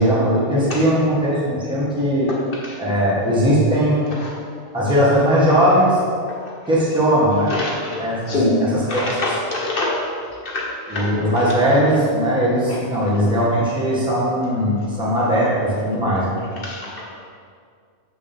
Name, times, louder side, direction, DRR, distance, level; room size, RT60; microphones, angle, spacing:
voice 1, 0.0-2.3 2.8-4.0 4.7-6.0 6.7-7.5 8.0-9.1 10.9-16.4, equal, 5° right, -7 dB, 1.5 m, -19 dB
voice 2, 2.3-2.8 4.1-4.3 6.3-6.4 7.5-8.6 8.9-10.0 10.4-11.1 11.4-11.5 12.7-12.8 16.6-17.1, left 2 dB, 50° left, -3 dB, 1.3 m, -25 dB
7.1 x 6.6 x 3.6 m, 2.1 s
omnidirectional pair, 1.2 m